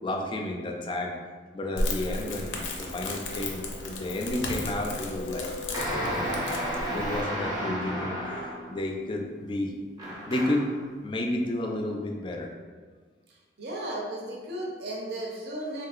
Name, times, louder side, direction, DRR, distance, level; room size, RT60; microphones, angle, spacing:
voice 1, 0.0-1.1 1.5-5.5 5.9-6.3 6.9-8.2 8.7-9.7 10.3-10.7 11.0-12.5, left 1 dB, 25° left, 1 dB, 0.3 m, -31 dB
Crackle, 1.8-7.2, left 1 dB, 85° left, 0.5 m, -34 dB
sound 1, 5.7-8.8 10.0-10.8, equal, 20° right, 0.6 m, -32 dB
voice 2, 13.3-15.9, right 1 dB, 60° right, -2 dB, 0.6 m, -35 dB
3.5 x 2.7 x 2.4 m, 1.5 s
head